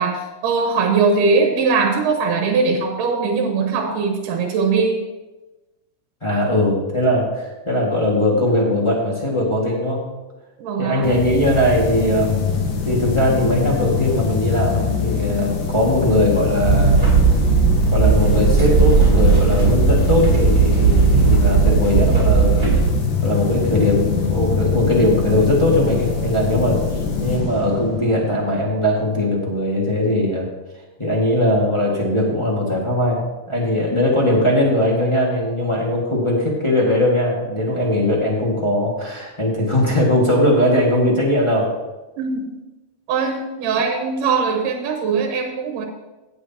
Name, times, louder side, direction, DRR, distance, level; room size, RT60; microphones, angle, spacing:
voice 1, 0.0-5.0 10.6-11.1 42.2-42.5 43.1-45.9, right 4 dB, 85° right, 2 dB, 2.7 m, -20 dB
voice 2, 6.2-10.0 10.8-12.4 12.8-17.3 17.9-22.7 23.2-26.8 27.2-30.5 31.0-41.7, left 1 dB, 15° left, -4 dB, 1.0 m, -20 dB
sound 1, 11.0-28.5, left 6 dB, 85° left, 3.1 m, -23 dB
sound 2, 16.6-22.9, right 5 dB, 25° right, 3.2 m, -16 dB
16.5 x 8.1 x 2.9 m, 1.1 s
omnidirectional pair, 3.7 m